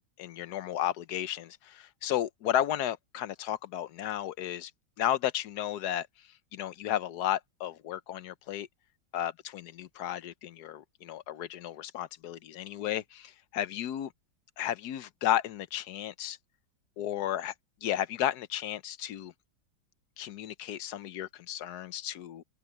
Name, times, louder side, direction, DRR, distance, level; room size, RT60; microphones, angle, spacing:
voice 1, 0.2-4.7 5.0-6.1 6.5-8.7 9.1-14.1 14.6-16.4 17.0-17.5 17.8-19.3 20.2-22.4, left 11 dB, 65° left, 1.2 m, -33 dB
open air
omnidirectional pair, 2.1 m